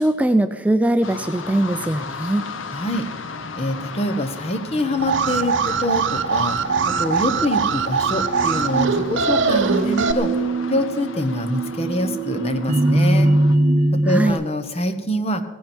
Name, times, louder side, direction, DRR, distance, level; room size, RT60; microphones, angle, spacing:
voice 1, 0.0-2.5 14.1-14.4, right 1 dB, 5° right, 9 dB, 0.4 m, -20 dB
sound 1, 1.0-13.6, left 4 dB, 80° left, 1.0 m, -36 dB
voice 2, 2.7-3.1 3.5-6.6 6.8-10.4 10.7-13.3 13.9-15.4, left 1 dB, 30° left, 8 dB, 1.2 m, -25 dB
Alarm, 5.0-10.1, right 5 dB, 70° right, 0.8 m, -22 dB
sound 2, 6.7-14.3, right 2 dB, 40° right, 1.2 m, -22 dB
17.0 x 15.5 x 4.5 m, 1.2 s
head